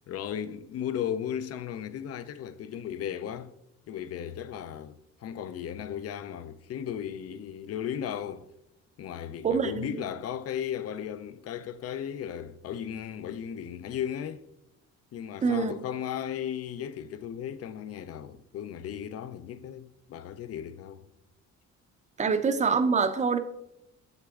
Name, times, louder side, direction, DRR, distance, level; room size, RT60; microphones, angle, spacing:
voice 1, 0.1-3.5 3.9-8.5 9.0-14.4 15.1-21.1, left 9 dB, 55° left, 0.4 m, -36 dB
voice 2, 9.4-10.0 15.4-15.7 22.2-23.4, right 5 dB, 25° right, 0.5 m, -25 dB
6.8 x 6.5 x 2.4 m
cardioid pair, 90°, 30 cm